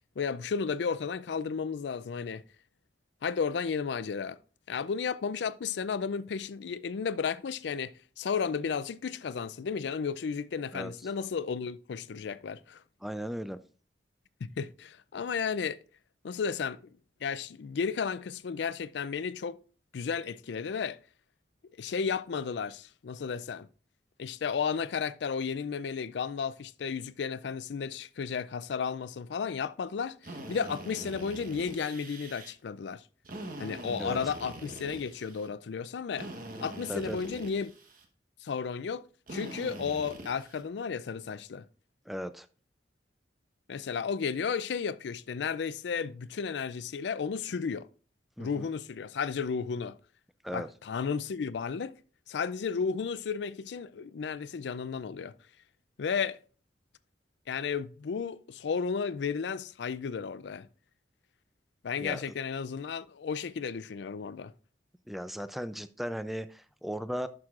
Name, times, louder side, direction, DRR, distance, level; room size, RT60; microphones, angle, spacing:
voice 1, 0.2-2.4 3.2-4.4 4.7-12.8 14.4-15.8 16.2-16.9 17.2-19.6 19.9-21.0 21.8-23.7 24.2-33.0 33.6-36.3 36.6-37.7 38.4-41.7 43.7-47.9 48.4-50.0 50.5-51.9 52.3-55.3 56.0-56.4 57.5-60.7 61.8-64.5, left 6 dB, 70° left, 0.4 m, -33 dB
voice 2, 13.0-13.6 34.0-34.2 36.6-37.2 42.1-42.5 48.4-48.7 50.4-50.7 62.0-62.2 65.1-67.3, equal, ahead, 0.3 m, -37 dB
Drill, 30.2-32.5 33.2-35.5 36.2-38.1 39.3-40.6, right 1 dB, 50° right, 1.1 m, -43 dB
11.5 x 6.2 x 2.4 m
head